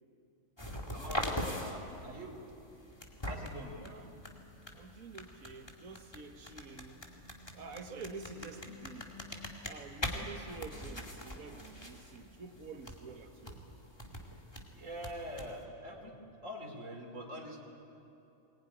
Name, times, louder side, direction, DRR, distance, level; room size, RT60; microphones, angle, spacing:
sound 1, 0.6-15.6, left 1 dB, 20° left, 2.1 m, -43 dB
voice 1, 0.9-2.4 3.2-3.8 14.7-16.1 16.4-17.6, equal, 65° right, 2 dB, 3.5 m, -44 dB
voice 2, 3.7-4.1 4.5-7.1 7.5-9.2 9.6-13.7 14.1-14.5, right 4 dB, 85° right, 6 dB, 1.9 m, -49 dB
22.0 x 20.5 x 9.9 m, 2.9 s
omnidirectional pair, 1.4 m